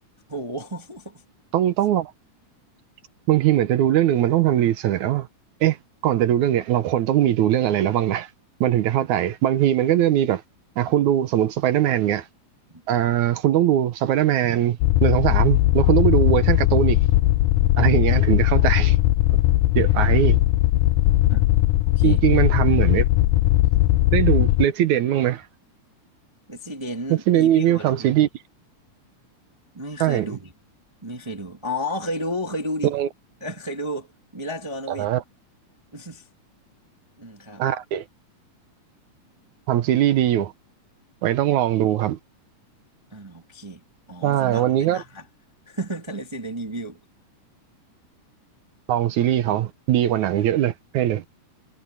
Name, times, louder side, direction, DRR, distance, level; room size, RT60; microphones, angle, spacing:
voice 1, 0.3-1.2 11.0-11.1 12.7-12.8 19.7-20.1 21.2-21.4 22.0-22.2 26.5-28.1 29.7-30.5 31.0-32.9 33.4-34.1 34.3-35.1 35.9-36.2 37.2-37.6 43.1-43.8 44.1-45.2 45.7-47.0, equal, 20° right, 0.7 m, -32 dB
voice 2, 1.5-2.1 3.3-5.3 5.6-5.8 6.0-8.3 8.6-10.4 10.8-12.3 12.9-17.0 17.8-19.0 19.8-20.4 22.0-23.1 24.1-25.5 27.1-28.3 30.0-30.4 32.9-33.1 34.9-35.2 37.6-38.0 39.7-40.5 41.2-42.2 44.2-45.0 48.9-51.2, right 12 dB, 70° right, 2.2 m, -21 dB
sound 1, 14.8-24.7, left 16 dB, 85° left, 2.2 m, -19 dB
omnidirectional pair, 3.7 m